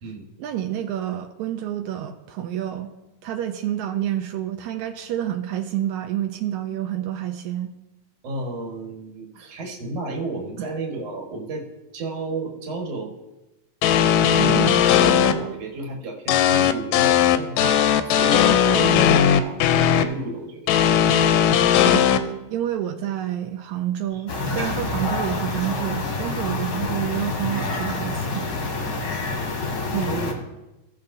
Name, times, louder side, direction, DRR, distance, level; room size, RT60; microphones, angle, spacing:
voice 1, 0.4-2.9 3.2-7.7 9.4-9.5 10.6-10.7 14.4-14.8 18.8-19.1 21.8-28.5 29.9-30.2, right 11 dB, 80° right, 5 dB, 1.9 m, -28 dB
voice 2, 8.2-11.6 11.9-13.2 14.2-20.7 24.1-24.2 24.6-24.7 29.9-30.3, right 2 dB, 60° right, 1 dB, 2.4 m, -32 dB
sound 1, 13.8-15.3 16.3-20.0 20.7-22.2, left 9 dB, 80° left, 1.8 m, -17 dB
sound 2, 24.3-30.3, left 3 dB, 55° left, 1.3 m, -27 dB
17.0 x 6.9 x 2.6 m, 1.0 s
omnidirectional pair, 3.5 m